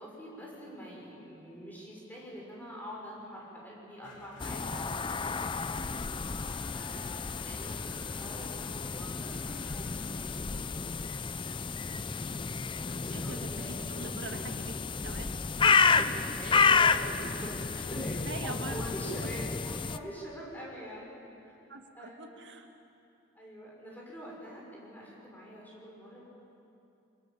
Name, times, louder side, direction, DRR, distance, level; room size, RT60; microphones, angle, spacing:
voice 1, 0.0-5.9 6.7-12.0 12.8-13.7 15.8-17.6 17.9-21.5 21.9-22.4 23.3-26.2, equal, 10° left, -4 dB, 6.3 m, -45 dB
sound 1, 4.0-13.4, left 1 dB, 70° left, 2.8 m, -55 dB
sound 2, 4.4-20.0, left 5 dB, 25° left, 0.5 m, -30 dB
Musical instrument, 12.2-18.5, right 1 dB, 20° right, 2.4 m, -54 dB
voice 2, 13.1-13.5 13.9-14.7 15.0-15.3 15.6-15.7 16.0-16.1 17.9-18.9 21.7-22.7, right 2 dB, 60° right, 4 dB, 2.0 m, -43 dB
24.5 x 21.0 x 7.4 m, 2.8 s
head